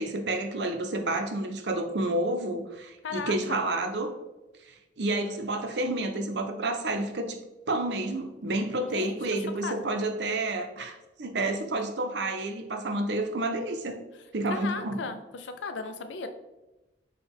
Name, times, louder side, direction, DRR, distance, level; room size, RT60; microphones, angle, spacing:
voice 1, 0.0-4.1 4.6-7.4 7.7-14.0 14.3-15.0, right 2 dB, 65° right, 6 dB, 0.6 m, -30 dB
voice 2, 3.0-3.7 8.9-9.2 9.6-9.9 14.5-16.3, left 4 dB, 80° left, 8 dB, 0.5 m, -36 dB
6.0 x 2.2 x 3.5 m, 1.0 s
head